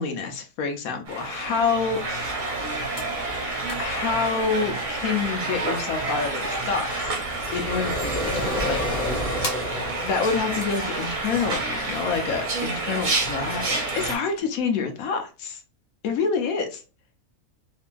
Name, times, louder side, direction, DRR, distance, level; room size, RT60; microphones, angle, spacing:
voice 1, 0.0-2.0 3.7-7.2 7.5-9.3 10.0-15.6 16.0-16.8, left 5 dB, 80° left, 1.0 m, -27 dB
sound 1, 1.1-14.2, right 2 dB, 45° right, 0.7 m, -29 dB
sound 2, 2.6-14.4, left 2 dB, 50° left, 1.0 m, -44 dB
sound 3, 7.0-11.0, left 1 dB, 5° left, 0.4 m, -30 dB
2.7 x 2.5 x 2.2 m
omnidirectional pair, 1.5 m